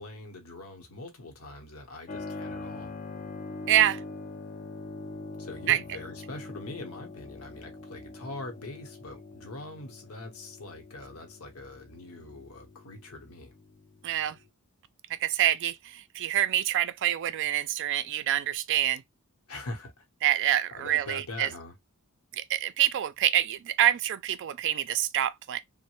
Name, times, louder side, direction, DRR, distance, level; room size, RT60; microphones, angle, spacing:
voice 1, 0.0-2.9 5.4-13.5 19.5-20.0 20.7-21.7, left 2 dB, 70° left, 0.9 m, -42 dB
Keyboard (musical), 2.1-14.5, left 3 dB, 35° left, 0.4 m, -43 dB
voice 2, 3.7-4.0 5.7-5.8 14.0-14.4 15.1-19.0 20.2-21.5 22.3-25.6, right 12 dB, 55° right, 0.4 m, -26 dB
3.1 x 2.1 x 2.9 m
head